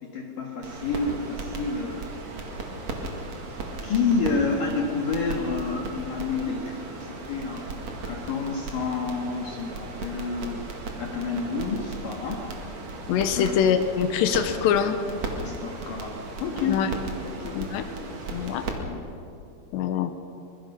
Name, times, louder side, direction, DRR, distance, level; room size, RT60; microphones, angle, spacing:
voice 1, 0.0-2.5 3.8-12.4 13.4-13.6 15.4-16.8 17.2-19.1, left 4 dB, 60° left, 0 dB, 2.9 m, -30 dB
sound 1, 0.6-18.7, right 2 dB, 50° right, 2.7 m, -36 dB
voice 2, 13.1-15.0 16.6-16.9 17.6-17.8 18.3-18.6 19.7-20.1, left 8 dB, 85° left, 8 dB, 3.1 m, -24 dB
24.5 x 21.5 x 5.6 m, 2.6 s
omnidirectional pair, 5.0 m